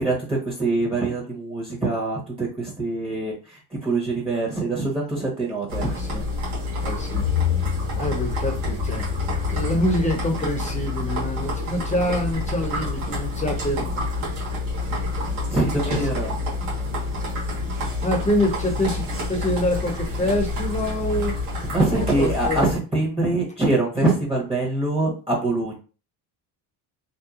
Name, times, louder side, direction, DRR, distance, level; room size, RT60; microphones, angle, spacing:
voice 1, 0.0-6.0 15.5-16.3 21.7-25.8, right 2 dB, 10° right, -4 dB, 1.1 m, -24 dB
sound 1, 5.7-22.8, left 3 dB, 90° right, 1.2 m, -27 dB
voice 2, 5.8-6.2 6.8-7.3 8.0-9.0 9.5-13.9 15.9-16.0 18.0-21.3 21.9-22.7, left 1 dB, 15° left, 2 dB, 0.9 m, -26 dB
2.8 x 2.2 x 2.4 m, 0.35 s
supercardioid pair, 85°, 46 cm